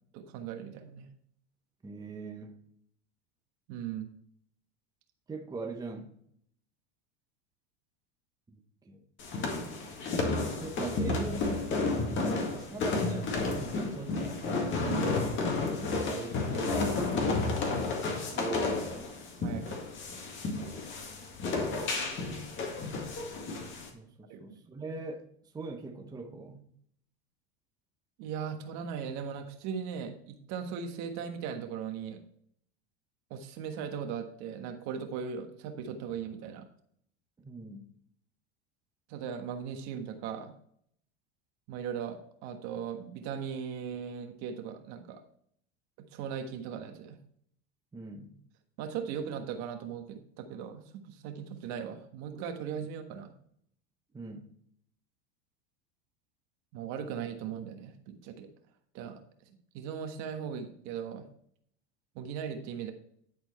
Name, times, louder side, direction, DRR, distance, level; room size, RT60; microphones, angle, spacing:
voice 1, 0.1-1.1 3.7-4.1 14.8-15.1 19.4-19.8 24.3-24.6 28.2-32.2 33.3-36.6 39.1-40.5 41.7-45.2 46.0-47.2 48.8-50.8 51.1-53.3 56.7-58.5 58.9-59.2 59.7-61.3 62.1-62.9, right 7 dB, 55° right, 1.4 m, -38 dB
voice 2, 1.8-2.6 5.3-6.1 8.5-9.0 10.6-14.4 15.7-19.2 23.9-25.2 25.5-26.7 37.4-37.9 47.9-48.3 54.1-54.5, right 3 dB, 10° right, 0.9 m, -41 dB
sound 1, 9.2-23.9, left 3 dB, 35° left, 1.9 m, -32 dB
10.5 x 4.4 x 4.3 m
supercardioid pair, 130°, 33 cm